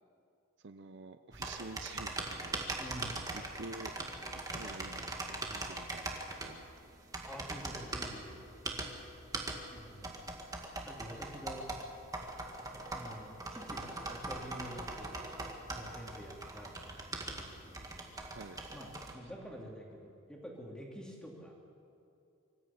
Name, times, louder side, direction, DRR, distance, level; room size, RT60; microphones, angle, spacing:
voice 1, 0.6-2.6 3.3-3.9 4.5-5.1 5.5-6.6 18.3-18.6 19.1-19.2, right 3 dB, 55° right, 10 dB, 0.6 m, -48 dB
sound 1, 1.3-19.1, right 2 dB, 15° right, 1.8 m, -41 dB
voice 2, 2.8-3.2 7.3-8.4 9.7-10.1 10.8-11.7 12.9-15.2 15.7-18.3 18.7-21.5, equal, 5° left, -1 dB, 3.1 m, -48 dB
24.5 x 14.0 x 8.6 m, 2.6 s
head